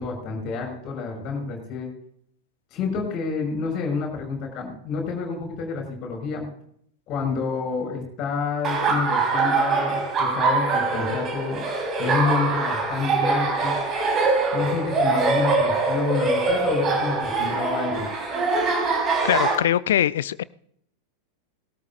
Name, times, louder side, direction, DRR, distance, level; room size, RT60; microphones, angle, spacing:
voice 1, 0.0-1.9 2.7-6.5 7.1-11.6 12.0-13.7 14.5-18.1, left 4 dB, 35° left, 1 dB, 5.9 m, -28 dB
Laughter, 8.6-19.6, right 3 dB, 30° right, 3.8 m, -23 dB
voice 2, 19.2-20.4, left 11 dB, 60° left, 20 dB, 0.5 m, -22 dB
20.5 x 13.0 x 2.5 m, 0.67 s
figure-of-eight pair, 90°, 0 cm